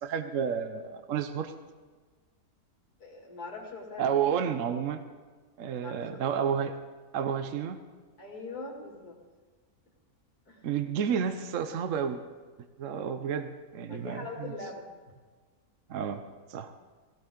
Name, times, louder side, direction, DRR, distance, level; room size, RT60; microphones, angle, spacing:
voice 1, 0.0-1.5 4.0-5.0 5.6-6.8 7.1-7.8 10.6-12.2 12.8-14.5 15.9-16.2 16.5-16.7, right 7 dB, 60° right, 9 dB, 1.0 m, -31 dB
voice 2, 3.0-4.2 5.8-6.2 8.2-9.2 10.5-10.6 13.9-14.8, left 3 dB, 75° left, -2 dB, 3.2 m, -41 dB
18.0 x 16.0 x 3.8 m, 1.4 s
omnidirectional pair, 1.6 m